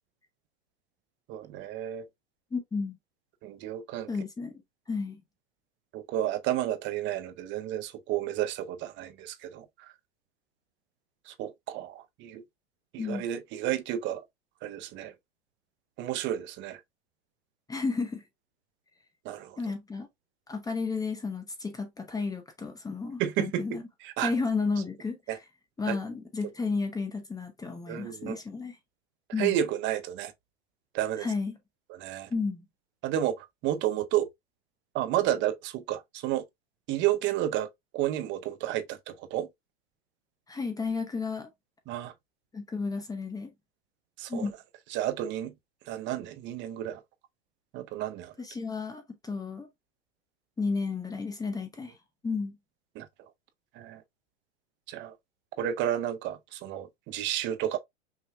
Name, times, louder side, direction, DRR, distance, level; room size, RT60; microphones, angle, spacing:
voice 1, 1.3-2.0 3.4-4.1 5.9-9.7 11.3-12.4 12.9-14.2 14.6-15.1 16.0-16.8 19.2-19.6 23.2-24.3 25.3-25.4 25.9-26.0 27.9-28.4 29.4-30.3 30.9-31.3 32.0-32.3 33.0-34.3 34.9-36.4 36.9-37.7 37.9-39.5 41.9-42.1 44.2-44.5 44.9-45.5 45.9-47.0 47.7-48.3 53.0-53.1 53.8-54.0 54.9-55.1 55.6-57.8, right 12 dB, 35° right, 0.7 m, -31 dB
voice 2, 2.5-3.0 4.1-4.6 4.9-5.2 13.0-13.3 17.7-18.2 19.6-20.1 20.5-23.8 24.2-25.2 25.8-28.8 29.3-29.6 31.2-31.6 32.3-32.6 40.5-41.5 42.5-43.5 44.3-44.5 48.4-49.7 50.6-51.9 52.2-52.6, left 4 dB, 10° left, 0.8 m, -32 dB
5.7 x 3.1 x 2.2 m
hypercardioid pair, 120°, 33 cm